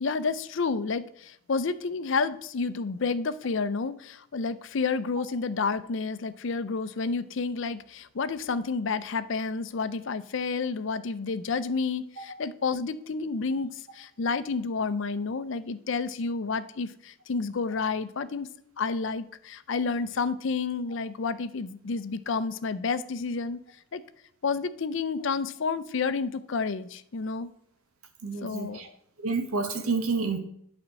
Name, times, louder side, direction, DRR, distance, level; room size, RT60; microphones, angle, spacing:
voice 1, 0.0-18.5 18.8-23.6 23.9-24.0 24.4-27.5 28.4-28.8, left 4 dB, 60° left, 14 dB, 0.5 m, -30 dB
voice 2, 28.2-28.9 29.2-30.4, right 4 dB, 80° right, 6 dB, 1.0 m, -29 dB
8.7 x 4.3 x 6.3 m, 0.69 s
head